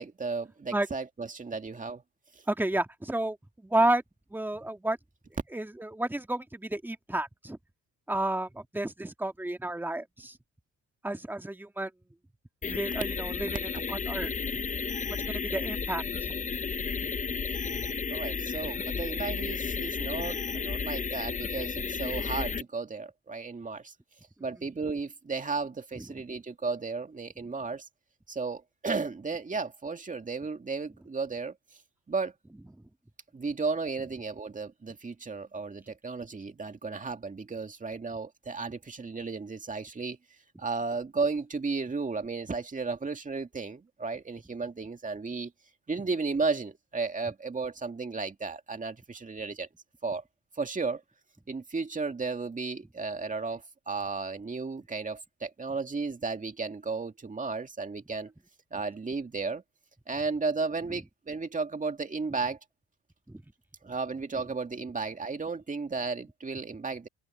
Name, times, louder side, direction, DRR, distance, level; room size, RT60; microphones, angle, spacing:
voice 1, 0.0-2.0 18.1-23.9 24.4-27.9 28.3-31.5 32.1-32.3 33.3-40.2 40.6-45.5 45.9-49.7 50.0-50.2 50.6-51.0 51.5-58.3 58.7-59.6 60.1-62.6 63.8-67.1, right 4 dB, 25° right, 2.2 m, -34 dB
voice 2, 2.5-3.4 3.6-4.0 4.3-5.0 5.5-7.6 8.1-10.4 11.0-11.9 12.6-13.6 13.9-14.3 15.3-16.3 17.0-17.4 26.0-26.1 63.3-63.4, right 1 dB, 5° right, 1.8 m, -31 dB
sound 1, 12.6-22.6, left 5 dB, 25° left, 0.7 m, -33 dB
open air
cardioid pair, 90°, 30 cm